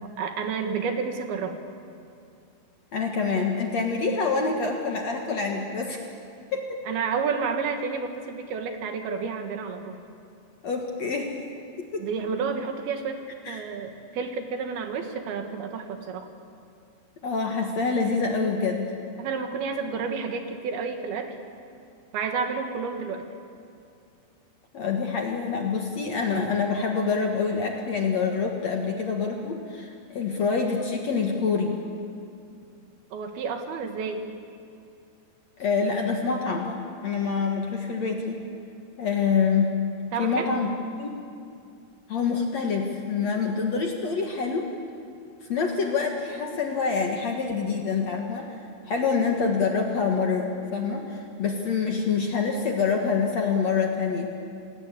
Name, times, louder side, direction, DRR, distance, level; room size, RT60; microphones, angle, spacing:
voice 1, 0.0-1.6 6.9-10.0 12.0-16.3 19.2-21.3 22.1-23.2 33.1-34.3 40.1-40.5, right 5 dB, 65° right, 5 dB, 3.2 m, -30 dB
voice 2, 2.9-6.0 6.5-6.8 10.6-11.4 11.8-12.1 13.5-13.7 17.2-18.9 24.7-31.8 35.6-38.4 39.0-39.7 40.2-41.2 42.1-44.7 45.5-48.6 48.9-54.3, left 5 dB, 55° left, 2 dB, 2.0 m, -26 dB
27.5 x 19.0 x 8.5 m, 2.4 s
omnidirectional pair, 5.2 m